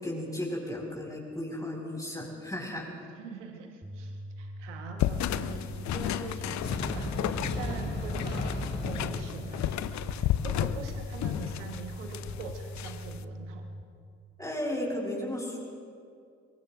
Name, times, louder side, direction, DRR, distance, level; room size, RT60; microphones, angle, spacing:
voice 1, 0.0-2.9 14.4-15.6, left 1 dB, 10° left, -2 dB, 4.2 m, -34 dB
voice 2, 3.2-13.7, right 5 dB, 80° right, 5 dB, 1.2 m, -44 dB
sound 1, 3.8-13.8, equal, 10° right, 5.0 m, -42 dB
sound 2, 5.0-13.2, left 12 dB, 50° left, 0.6 m, -33 dB
sound 3, 6.6-10.6, equal, 30° left, 4.7 m, -35 dB
23.5 x 23.5 x 2.5 m, 2.4 s
figure-of-eight pair, 40°, 35 cm